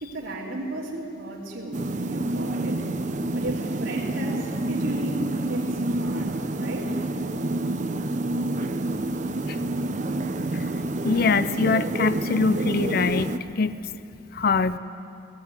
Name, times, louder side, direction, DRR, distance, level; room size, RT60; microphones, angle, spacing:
voice 1, 0.0-1.8 2.1-2.8 3.3-7.0, right 1 dB, 80° right, -8 dB, 3.3 m, -35 dB
sound 1, 1.7-13.4, right 2 dB, 40° right, 0.7 m, -28 dB
voice 2, 11.0-13.3 13.6-13.7 14.3-14.8, left 4 dB, 50° left, 14 dB, 0.5 m, -23 dB
18.5 x 16.5 x 9.5 m, 2.7 s
head